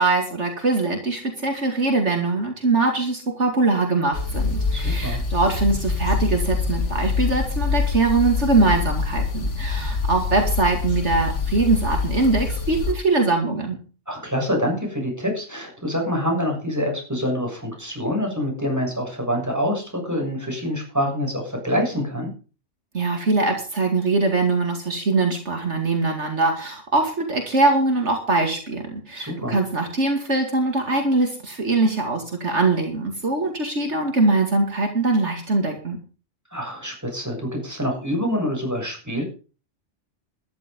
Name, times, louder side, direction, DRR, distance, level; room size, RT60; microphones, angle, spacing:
voice 1, 0.0-13.8 22.9-36.0, right 3 dB, 70° right, 4 dB, 2.7 m, -22 dB
sound 1, 4.1-12.9, left 4 dB, 70° left, 2.1 m, -25 dB
voice 2, 4.7-5.2 14.1-22.3 29.1-29.6 36.5-39.2, equal, 15° right, 1 dB, 7.0 m, -26 dB
13.0 x 11.5 x 5.3 m, 0.36 s
omnidirectional pair, 1.2 m